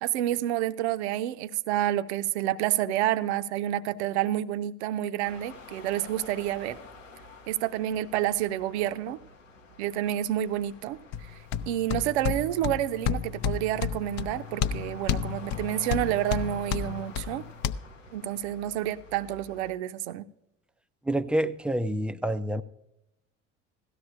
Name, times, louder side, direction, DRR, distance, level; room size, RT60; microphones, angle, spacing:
voice 1, 0.0-6.8 7.5-9.2 9.8-11.0 11.7-17.4 18.1-20.3, right 12 dB, 60° right, 0.6 m, -29 dB
sound 1, 5.2-19.7, left 3 dB, 85° left, 0.7 m, -49 dB
sound 2, 11.1-17.7, left 8 dB, 45° left, 0.5 m, -32 dB
voice 2, 21.1-22.6, right 1 dB, 5° right, 0.3 m, -27 dB
17.0 x 13.5 x 2.5 m
figure-of-eight pair, 60°, 37 cm